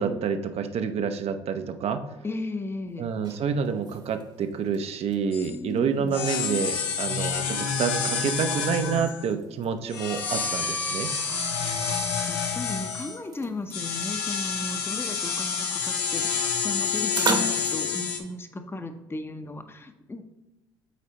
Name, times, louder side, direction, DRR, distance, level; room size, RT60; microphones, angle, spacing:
voice 1, 0.0-2.0 3.0-11.1, right 6 dB, 50° right, 8 dB, 0.7 m, -28 dB
voice 2, 2.2-3.1 5.5-6.3 11.3-20.2, left 2 dB, 20° left, 7 dB, 0.7 m, -36 dB
sound 1, 2.9-17.7, right 3 dB, 35° right, 1.0 m, -39 dB
sound 2, 5.3-5.5 6.1-9.3 9.9-13.2 13.7-18.2, left 6 dB, 85° left, 0.8 m, -28 dB
8.3 x 4.1 x 2.9 m, 1.1 s
hypercardioid pair, 60°, 13 cm